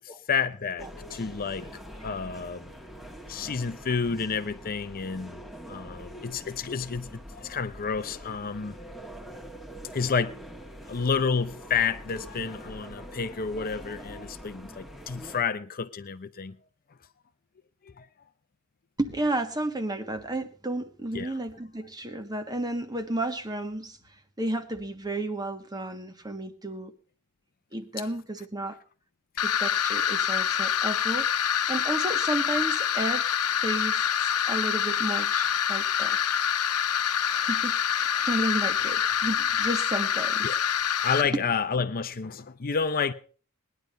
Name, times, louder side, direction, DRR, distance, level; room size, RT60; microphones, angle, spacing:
voice 1, 0.3-1.7 2.0-2.7 3.3-5.4 5.7-8.8 9.9-10.4 10.9-16.6 18.0-18.1 21.1-21.3 40.4-40.6 41.0-43.1, left 5 dB, 40° left, 0.6 m, -30 dB
sound 1, 0.8-15.4, equal, ahead, 1.5 m, -44 dB
voice 2, 19.0-24.0 24.4-26.9 27.7-28.8 29.4-33.3 33.6-36.3 37.3-40.5, right 1 dB, 20° right, 1.4 m, -32 dB
sound 2, 29.4-41.2, left 9 dB, 90° left, 0.9 m, -26 dB
19.0 x 10.5 x 5.3 m
head